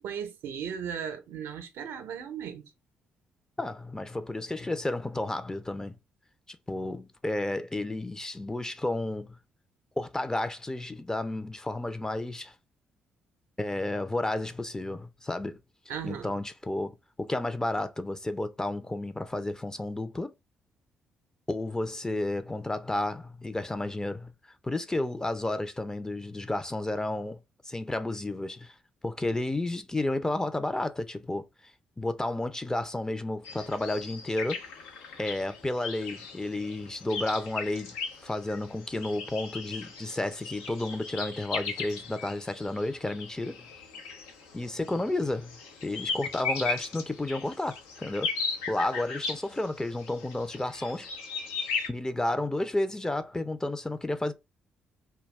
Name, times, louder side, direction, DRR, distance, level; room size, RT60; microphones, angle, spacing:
voice 1, 0.0-2.7 15.9-16.4, right 8 dB, 70° right, 0.6 m, -36 dB
voice 2, 3.6-6.0 6.5-9.4 10.0-12.5 13.6-15.6 16.0-16.9 17.2-20.3 21.5-24.3 24.6-27.4 27.7-28.7 29.0-31.4 32.0-34.6 35.2-38.0 38.2-43.6 44.5-48.3 48.7-51.1 51.9-54.3, left 2 dB, 15° left, 0.5 m, -32 dB
sound 1, 33.4-51.9, left 5 dB, 80° left, 0.5 m, -37 dB
2.3 x 2.2 x 3.3 m
hypercardioid pair, 45°, 4 cm